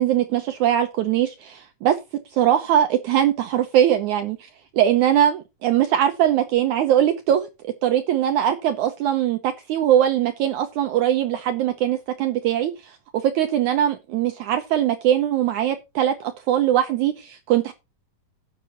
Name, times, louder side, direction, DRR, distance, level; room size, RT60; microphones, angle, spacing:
voice 1, 0.0-2.0 2.3-7.5 7.8-17.7, right 11 dB, 75° right, 2.0 m, -21 dB
17.5 x 6.8 x 3.0 m
omnidirectional pair, 4.0 m